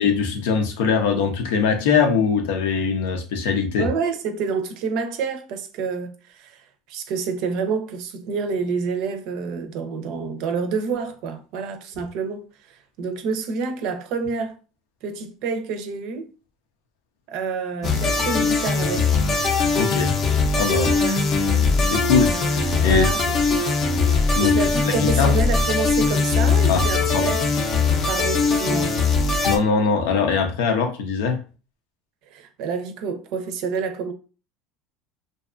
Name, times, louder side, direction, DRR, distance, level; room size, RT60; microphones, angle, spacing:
voice 1, 0.0-3.9 19.8-20.2 20.6-20.9 21.9-23.1 24.3-24.5 25.2-25.3 26.7-26.8 27.1-27.3 29.4-31.4, left 5 dB, 85° left, 0.6 m, -21 dB
voice 2, 3.8-14.6 15.0-16.3 17.3-19.2 20.8-21.2 22.8-23.6 24.4-27.4 28.1-28.9 32.3-34.1, right 5 dB, 65° right, 0.5 m, -28 dB
sound 1, 17.8-29.6, left 4 dB, 40° left, 0.5 m, -20 dB
2.6 x 2.3 x 2.4 m
supercardioid pair, 135°, 0 cm